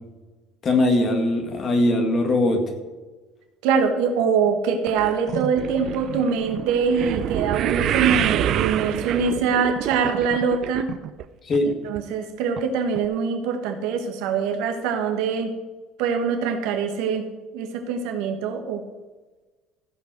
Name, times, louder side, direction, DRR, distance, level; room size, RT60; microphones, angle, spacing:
voice 1, 0.6-2.6 11.5-11.7, left 2 dB, 30° left, 3 dB, 2.0 m, -20 dB
voice 2, 3.6-10.9 11.6-15.6 16.0-17.3 17.5-18.8, right 6 dB, 80° right, 5 dB, 1.8 m, -24 dB
sound 1, 4.9-11.3 11.5-12.0 12.6-12.7 13.0-13.1, right 11 dB, 50° right, 0.5 m, -27 dB
15.0 x 5.5 x 6.3 m, 1.2 s
cardioid pair, 155°, 0 cm